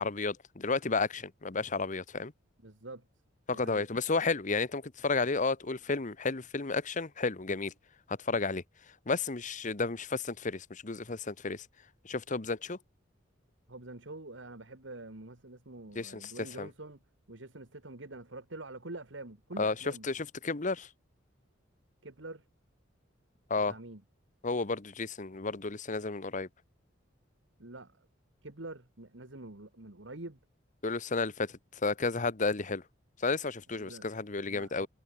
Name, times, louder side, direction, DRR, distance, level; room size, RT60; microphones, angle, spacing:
voice 1, 0.0-2.3 3.5-7.7 8.1-8.6 9.1-11.7 12.0-12.8 15.9-16.3 16.6-16.7 19.6-19.7 20.0-20.9 23.5-23.7 24.4-26.5 30.8-32.8 33.2-34.9, left 3 dB, 40° left, 1.1 m, -32 dB
voice 2, 2.6-3.1 3.5-3.9 13.7-17.0 17.3-20.1 22.0-22.4 23.7-24.0 27.6-28.1 28.4-30.4 33.8-34.1 34.5-34.9, right 2 dB, 70° right, 2.2 m, -46 dB
head